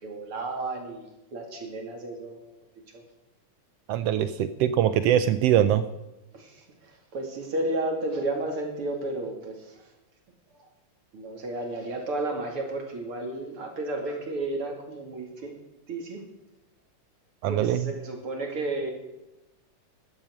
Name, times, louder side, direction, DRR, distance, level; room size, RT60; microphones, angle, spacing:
voice 1, 0.0-1.1 1.3-2.4 2.9-3.0 6.3-9.8 10.5-10.7 11.1-15.5 15.9-16.2 17.5-18.9, right 2 dB, 50° right, 2 dB, 3.1 m, -32 dB
voice 2, 3.9-5.8 17.4-17.9, right 10 dB, 80° right, 12 dB, 1.4 m, -23 dB
13.0 x 12.0 x 6.3 m, 0.97 s
omnidirectional pair, 3.4 m